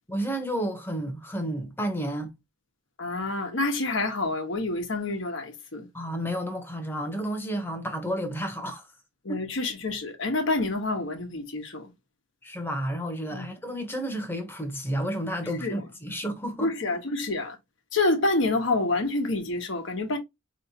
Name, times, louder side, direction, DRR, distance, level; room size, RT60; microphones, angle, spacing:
voice 1, 0.1-2.3 5.9-8.9 9.3-9.4 12.4-16.7, equal, 10° left, 0.9 m, -31 dB
voice 2, 3.0-5.9 9.2-11.9 13.3-13.5 15.6-15.8 16.6-17.6 17.9-20.2, left 2 dB, 75° left, 1.0 m, -27 dB
4.2 x 3.1 x 2.7 m
head